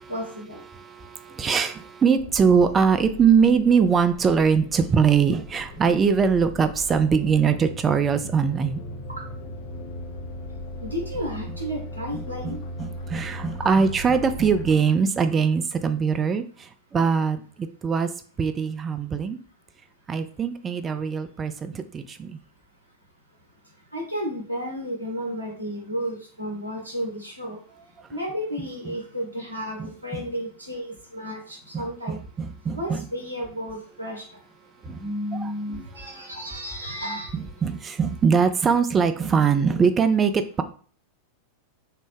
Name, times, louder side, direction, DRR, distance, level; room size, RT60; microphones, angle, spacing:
voice 1, 0.1-0.6 10.8-12.6 13.4-13.8 23.9-27.6 28.1-32.2 32.7-34.2 34.9-37.3, equal, 80° right, 0 dB, 0.9 m, -32 dB
voice 2, 0.7-8.8 12.1-17.4 17.8-18.1 18.4-19.4 20.1-22.4 29.8-29.9 30.1-30.2 31.7-33.1 34.8-35.0 35.3-36.3 37.3-40.6, right 6 dB, 20° right, 10 dB, 0.3 m, -22 dB
sound 1, 2.2-14.7, left 1 dB, 50° left, 0.6 m, -38 dB
3.3 x 2.0 x 3.2 m, 0.43 s
figure-of-eight pair, 90°, 0 cm